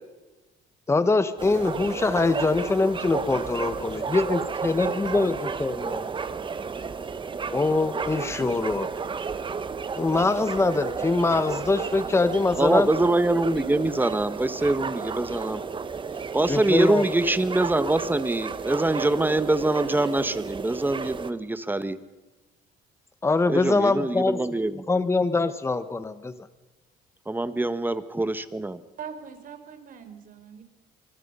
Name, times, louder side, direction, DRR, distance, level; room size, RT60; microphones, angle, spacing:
voice 1, 0.9-6.1 7.5-8.9 10.0-12.9 16.5-17.0 23.2-24.4 24.9-26.3, left 3 dB, 15° left, 12 dB, 1.2 m, -23 dB
sound 1, 1.4-21.3, right 5 dB, 30° right, 1.3 m, -32 dB
voice 2, 12.6-15.6 16.3-22.0 23.5-25.0 27.3-28.8, right 2 dB, 10° right, 12 dB, 1.4 m, -24 dB
voice 3, 29.0-30.6, right 7 dB, 55° right, 8 dB, 4.0 m, -41 dB
24.5 x 23.5 x 5.6 m, 1.2 s
cardioid pair, 110°, 17 cm